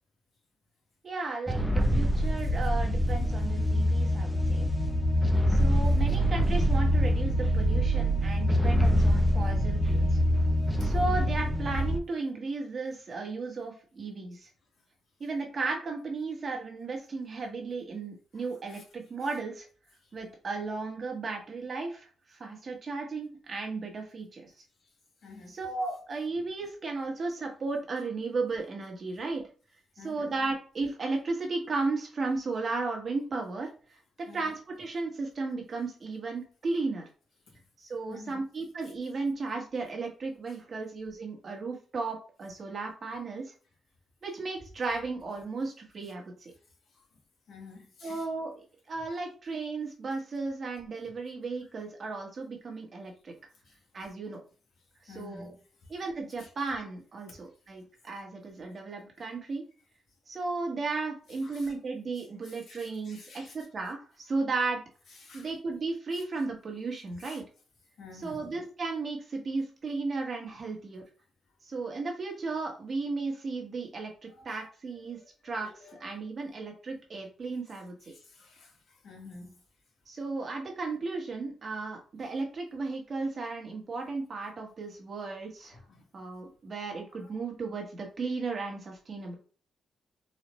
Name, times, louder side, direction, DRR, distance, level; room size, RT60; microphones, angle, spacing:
voice 1, 1.0-4.7 5.5-10.2 10.8-14.5 15.2-19.7 20.1-24.5 25.5-29.4 30.0-33.7 34.2-37.0 37.8-43.5 44.2-46.5 48.0-53.3 53.9-54.4 55.0-55.5 55.9-59.7 60.3-64.8 65.3-67.4 68.1-71.0 71.6-78.1 80.1-85.8 86.1-89.4, right 3 dB, 40° right, 1.2 m, -35 dB
sound 1, 1.5-12.0, equal, 5° left, 0.4 m, -25 dB
voice 2, 25.2-25.5 30.0-30.3 34.3-34.5 38.1-38.4 47.5-48.2 55.1-55.5 61.4-61.7 62.4-63.5 65.2-65.5 67.2-67.4 68.0-68.5 74.3-74.7 75.4-76.2 78.1-78.7 79.0-79.5 87.3-87.4, left 3 dB, 65° left, 1.3 m, -49 dB
4.1 x 2.4 x 3.0 m
cardioid pair, 135°, 0 cm